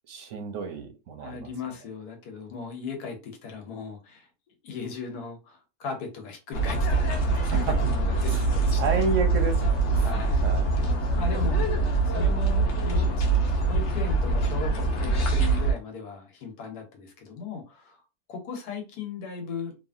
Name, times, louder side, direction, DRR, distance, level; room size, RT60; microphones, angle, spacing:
voice 1, 0.1-1.5 7.3-7.7 8.3-8.4 8.8-10.7, right 4 dB, 65° right, 0.8 m, -31 dB
voice 2, 1.2-4.3 4.6-9.0 10.0-10.5 11.2-11.6 12.0-13.2 13.6-18.0 18.3-19.8, left 5 dB, 80° left, 1.4 m, -37 dB
sound 1, 6.5-15.7, right 3 dB, 55° left, 0.9 m, -24 dB
2.9 x 2.5 x 2.4 m
omnidirectional pair, 1.7 m